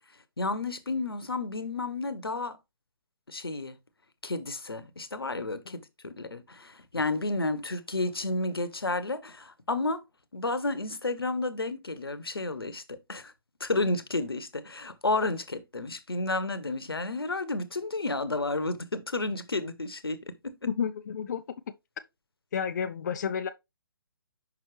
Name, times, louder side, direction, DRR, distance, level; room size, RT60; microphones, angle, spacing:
voice 1, 0.4-2.6 3.3-3.8 4.2-10.0 10.3-13.3 13.6-20.6, left 2 dB, 85° left, 1.0 m, -31 dB
voice 2, 20.7-21.4 22.5-23.5, left 7 dB, 50° left, 0.5 m, -30 dB
6.1 x 5.6 x 3.2 m
figure-of-eight pair, 140°, 12 cm